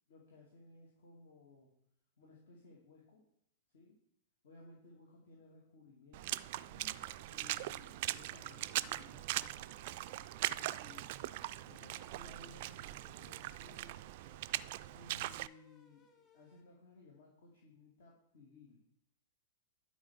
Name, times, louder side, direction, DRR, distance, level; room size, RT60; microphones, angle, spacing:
voice 1, 0.1-1.8 2.2-3.2 3.7-4.0 4.4-9.8 10.4-14.0 14.9-18.8, left 2 dB, 60° left, -3 dB, 2.4 m, -59 dB
Water / Splash splatter, 6.1-15.5, right 16 dB, 50° right, 0.3 m, -41 dB
sound 1, 6.9-16.6, left 5 dB, 25° left, 2.6 m, -67 dB
11.0 x 5.1 x 6.5 m, 0.76 s
figure-of-eight pair, 100°, 0 cm